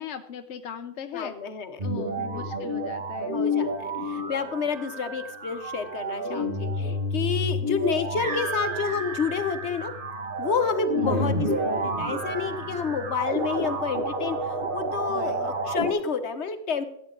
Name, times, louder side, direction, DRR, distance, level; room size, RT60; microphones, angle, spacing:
voice 1, 0.0-1.3 1.8-3.4 6.2-6.7 10.9-11.3 15.1-15.5, left 8 dB, 90° left, 7 dB, 1.0 m, -38 dB
voice 2, 1.1-1.8 2.1-2.5 3.3-9.9 10.4-16.8, left 6 dB, 75° left, 9 dB, 1.4 m, -30 dB
sound 1, 1.8-15.9, equal, 50° right, 1.6 m, -29 dB
14.5 x 8.7 x 3.8 m, 0.79 s
omnidirectional pair, 1.2 m